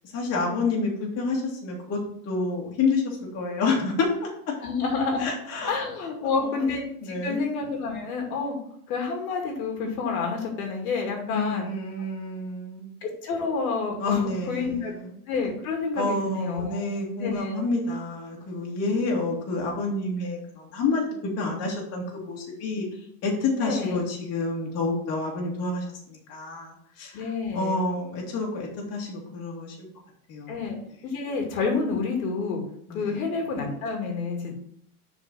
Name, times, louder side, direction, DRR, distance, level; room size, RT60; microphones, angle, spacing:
voice 1, 0.1-4.5 5.2-5.8 6.4-6.7 7.0-7.4 11.3-12.9 14.0-15.2 16.0-22.9 23.2-29.8 30.3-30.6 32.9-33.2, left 3 dB, 35° left, -2 dB, 2.5 m, -29 dB
voice 2, 4.6-5.3 5.7-8.6 8.9-11.7 13.0-14.9 15.3-16.9 17.2-17.6 23.6-24.0 27.1-27.8 30.5-32.6 32.9-34.5, left 4 dB, 70° left, 1 dB, 2.3 m, -29 dB
6.7 x 4.8 x 5.5 m, 0.68 s
supercardioid pair, 140°, 45 cm